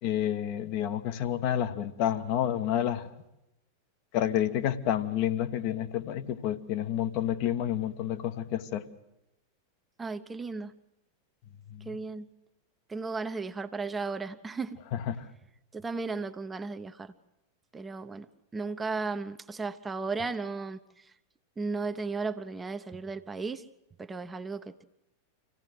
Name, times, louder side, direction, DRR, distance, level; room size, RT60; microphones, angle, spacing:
voice 1, 0.0-3.1 4.1-8.9 11.7-11.9 14.9-15.3, left 11 dB, 45° left, 1.2 m, -29 dB
voice 2, 10.0-10.7 11.9-12.3 12.9-14.8 15.7-17.1 17.7-18.3 18.5-21.1 21.6-23.6 24.0-24.8, right 4 dB, 15° right, 0.9 m, -35 dB
25.5 x 16.5 x 7.8 m
figure-of-eight pair, 90°, 0 cm